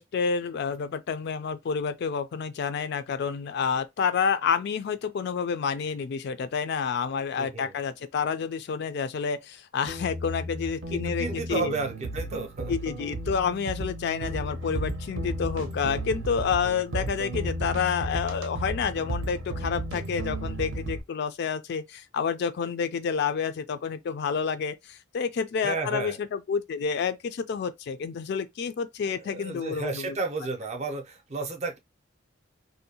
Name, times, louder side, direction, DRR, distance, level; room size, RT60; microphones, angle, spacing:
voice 1, 0.0-11.7 12.7-30.2, left 6 dB, 55° left, 0.3 m, -29 dB
voice 2, 7.4-7.8 10.9-12.7 25.6-26.2 29.1-31.8, right 3 dB, 35° right, 0.5 m, -32 dB
sound 1, 9.9-21.0, right 1 dB, 85° right, 0.6 m, -34 dB
2.6 x 2.1 x 2.7 m
head